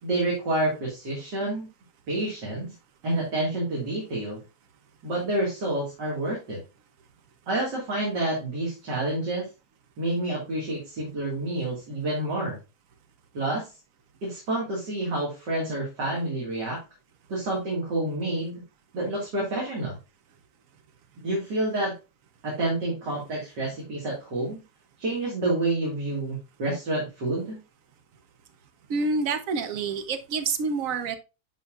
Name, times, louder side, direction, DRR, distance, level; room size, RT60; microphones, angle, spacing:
voice 1, 0.0-1.7 2.1-2.7 3.0-4.4 5.0-6.6 7.5-9.5 10.0-12.6 13.3-13.7 14.2-16.8 17.3-18.6 18.9-20.0 21.2-21.9 22.4-24.6 25.0-27.6, right 2 dB, 80° right, -4 dB, 2.6 m, -28 dB
voice 2, 28.9-31.2, right 4 dB, 60° right, 8 dB, 1.1 m, -27 dB
10.5 x 4.2 x 2.4 m, 0.28 s
omnidirectional pair, 1.8 m